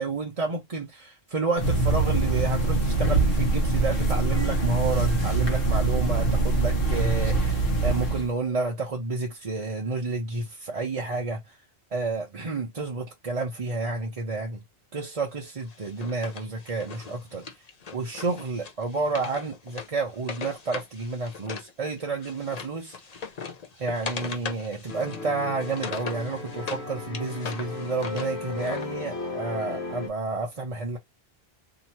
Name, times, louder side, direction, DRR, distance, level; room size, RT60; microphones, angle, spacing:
voice 1, 0.0-11.6 11.9-14.6 14.9-17.4 17.9-23.2 23.8-31.0, right 3 dB, 40° right, 0.7 m, -30 dB
sound 1, 1.6-8.3, right 3 dB, 60° left, 1.1 m, -23 dB
Wood, 15.7-21.7 22.0-26.8 27.1-28.9, left 5 dB, 45° left, 0.7 m, -39 dB
sound 2, 24.9-30.1, left 3 dB, 80° left, 1.4 m, -36 dB
2.9 x 2.7 x 4.3 m
omnidirectional pair, 1.1 m